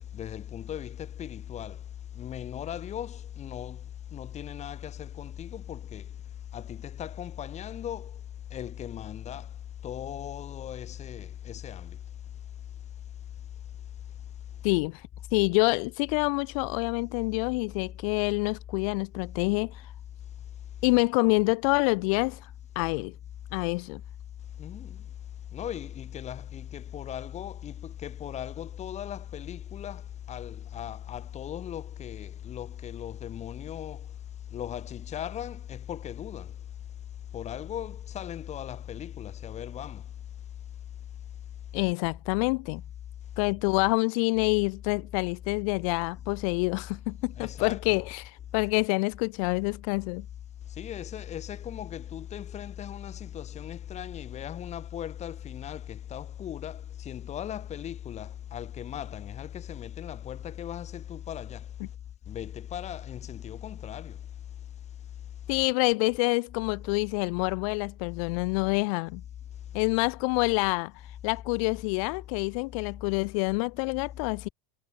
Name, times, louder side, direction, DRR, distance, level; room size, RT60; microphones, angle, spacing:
voice 1, 0.1-1.8 2.2-3.8 4.1-6.0 6.5-8.1 8.5-9.5 9.8-12.0 24.6-25.0 25.5-30.0 30.3-34.1 34.5-36.5 37.3-40.0 47.4-48.0 50.8-61.7 62.3-64.2 69.8-69.9, left 10 dB, 40° left, 5.7 m, -38 dB
voice 2, 14.6-15.0 15.3-19.8 20.8-22.4 22.8-23.1 23.5-24.0 41.7-42.8 43.4-48.2 48.5-50.3 65.5-69.2 69.7-70.9 71.2-74.5, left 29 dB, 75° left, 0.9 m, -27 dB
supercardioid pair, 105°, 18 cm